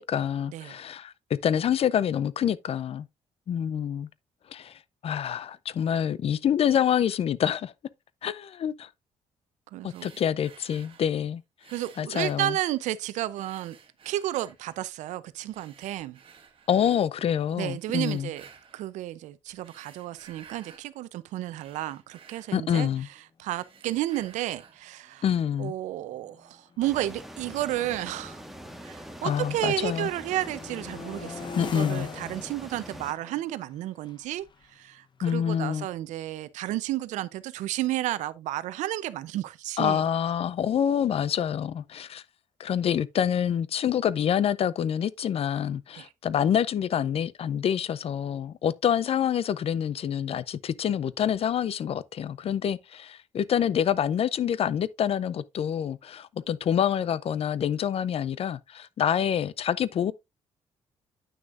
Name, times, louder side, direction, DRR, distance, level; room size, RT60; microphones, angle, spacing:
voice 1, 0.0-3.1 3.5-4.1 4.5-7.7 8.2-8.9 9.8-11.4 12.0-12.6 16.7-18.3 22.5-23.1 25.2-25.7 29.2-30.1 31.6-32.1 35.2-35.9 39.8-42.2 42.6-60.1, left 9 dB, 55° left, 0.5 m, -27 dB
voice 2, 9.7-10.1 11.7-13.8 14.0-16.2 17.5-18.4 18.7-22.9 23.4-25.2 25.6-28.4 28.8-40.0 46.0-46.1, right 14 dB, 90° right, 0.6 m, -32 dB
sound 1, 9.9-11.2 11.6-13.0 13.4-14.9 15.5-17.1 17.8-18.9 19.5-20.9 21.3-23.1 23.4-24.9, right 6 dB, 50° right, 1.6 m, -54 dB
sound 2, 23.6-23.7 24.0-24.3 25.1-29.0 29.4-36.0, left 5 dB, 40° left, 0.9 m, -44 dB
sound 3, 26.8-33.1, equal, ahead, 1.5 m, -43 dB
9.4 x 6.2 x 2.5 m
cardioid pair, 85°, 12 cm